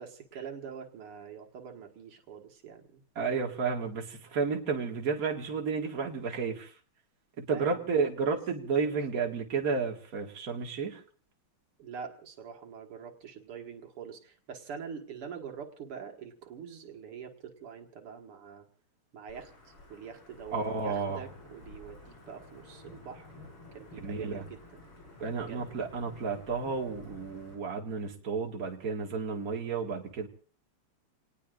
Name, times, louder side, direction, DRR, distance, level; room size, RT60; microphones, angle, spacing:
voice 1, 0.0-3.4 7.5-8.1 8.9-9.3 11.8-18.7 19.1-23.3 23.7-24.8 25.4-25.6, right 7 dB, 85° right, 3 dB, 2.7 m, -45 dB
voice 2, 3.2-6.7 7.4-11.0 20.5-21.2 24.0-24.5 25.2-30.3, right 5 dB, 45° right, 1 dB, 2.3 m, -32 dB
Wind / Thunder / Rain, 19.3-27.5, left 2 dB, 90° left, 7.1 m, -52 dB
28.5 x 19.0 x 2.6 m, 0.41 s
omnidirectional pair, 2.4 m